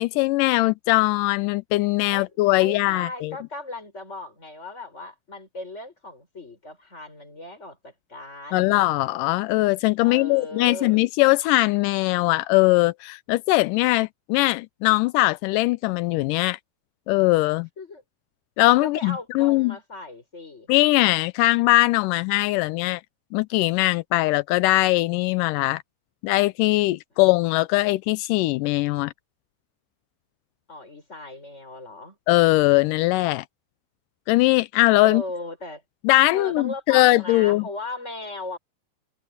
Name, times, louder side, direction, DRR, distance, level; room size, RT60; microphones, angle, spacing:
voice 1, 0.0-3.4 8.5-16.6 17.1-17.7 18.6-19.8 20.7-23.0 23.3-25.8 26.2-29.1 32.3-33.4 34.3-35.2 36.0-37.6, left 19 dB, 85° left, 1.9 m, -21 dB
voice 2, 2.1-8.9 10.0-11.0 17.8-18.0 18.8-20.7 30.7-32.2 35.0-35.8 36.3-38.6, left 2 dB, 15° left, 6.9 m, -37 dB
omnidirectional pair, 4.3 m